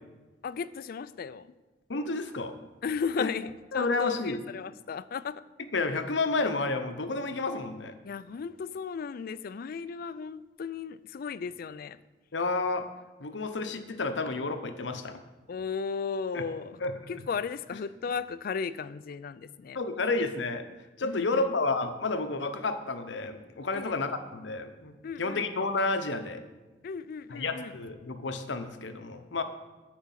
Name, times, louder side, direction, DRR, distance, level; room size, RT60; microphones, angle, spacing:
voice 1, 0.4-1.5 2.8-5.4 8.0-12.0 15.5-16.8 17.1-19.8 21.0-21.5 23.7-23.9 25.0-25.5 26.8-27.7, left 5 dB, 55° left, 16 dB, 0.3 m, -35 dB
voice 2, 1.9-2.6 3.2-3.3 3.7-4.4 5.7-7.9 12.3-12.9 13.2-15.2 16.3-16.4 16.8-16.9 19.7-20.7 21.0-24.9 25.2-26.4 27.3-29.4, left 3 dB, 75° left, 8 dB, 0.8 m, -30 dB
9.4 x 4.9 x 7.4 m, 1.2 s
head